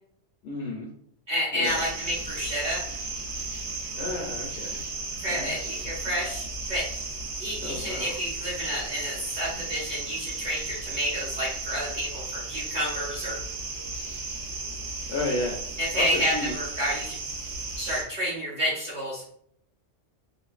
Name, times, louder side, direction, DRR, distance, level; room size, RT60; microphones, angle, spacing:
voice 1, 0.4-0.9 1.5-1.9 3.9-4.8 5.2-5.7 7.6-8.2 15.1-15.6 15.9-16.5, left 2 dB, 65° left, -2 dB, 0.8 m, -32 dB
voice 2, 1.3-2.8 5.2-6.9 7.4-13.4 15.8-17.2 17.8-19.2, equal, 45° right, -6 dB, 0.7 m, -30 dB
sound 1, 1.6-18.0, right 3 dB, 85° right, 1.0 m, -35 dB
2.5 x 2.1 x 2.3 m, 0.68 s
omnidirectional pair, 1.3 m